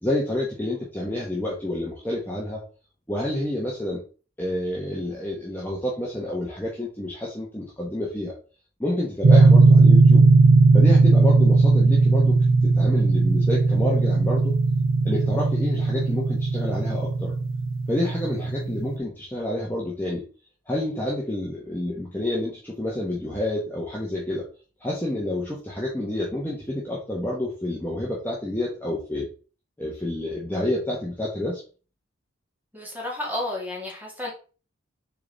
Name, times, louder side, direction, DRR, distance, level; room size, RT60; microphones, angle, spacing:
voice 1, 0.0-2.6 3.1-4.0 4.4-8.3 8.8-10.3 10.7-12.4 12.6-14.5 15.0-17.3 17.9-20.3 20.7-24.5 24.8-29.3 29.8-31.6, left 1 dB, 10° left, -4 dB, 1.2 m, -29 dB
sound 1, 9.2-19.0, right 3 dB, 75° right, 0.7 m, -18 dB
voice 2, 32.7-34.3, left 1 dB, 10° right, -2 dB, 2.0 m, -31 dB
6.9 x 3.8 x 4.0 m, 0.37 s
head